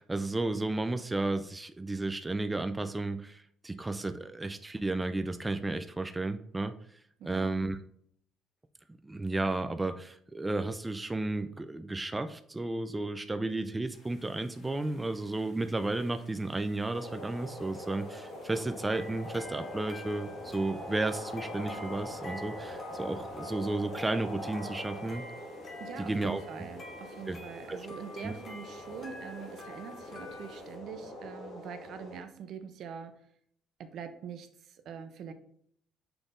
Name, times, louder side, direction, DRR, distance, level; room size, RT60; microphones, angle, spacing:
voice 1, 0.0-7.0 7.2-7.8 9.0-25.2 26.0-26.4 27.3-27.4 27.7-27.8 28.2-28.3, right 2 dB, 15° right, 9 dB, 0.3 m, -33 dB
voice 2, 7.2-7.6 25.8-33.3 33.8-35.3, right 7 dB, 65° right, 9 dB, 0.6 m, -44 dB
sound 1, 13.9-30.8, left 2 dB, 60° left, 2.0 m, -62 dB
sound 2, 16.9-32.2, left 1 dB, 80° left, 1.8 m, -43 dB
sound 3, 18.9-30.6, left 2 dB, 40° left, 1.8 m, -49 dB
6.0 x 3.4 x 2.5 m, 0.65 s
cardioid pair, 90°, 0 cm